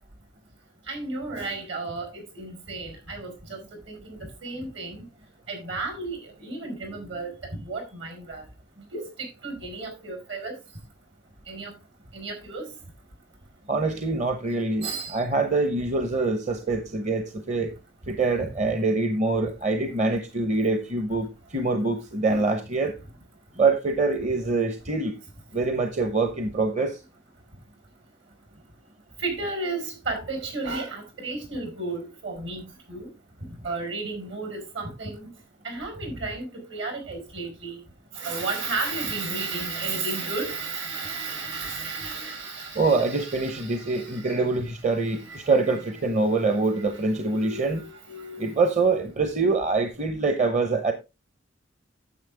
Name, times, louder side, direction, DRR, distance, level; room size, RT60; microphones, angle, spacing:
voice 1, 0.9-3.6 3.9-4.0 4.4-5.0 5.5-7.3 7.6-8.4 8.9-9.1 9.4-10.5 11.5-11.7 12.1-12.7 14.8-15.2 18.4-18.7 22.3-22.5 29.2-32.6 32.9-33.1 33.6-35.3 35.6-37.8 38.1-44.4 45.2-45.5 47.1-48.5, right 3 dB, 65° right, 4.7 m, -33 dB
voice 2, 13.7-17.7 18.1-22.9 23.6-25.2 25.5-27.0 42.7-47.8 48.4-50.9, right 3 dB, 40° right, 0.9 m, -25 dB
10.0 x 7.6 x 3.4 m
head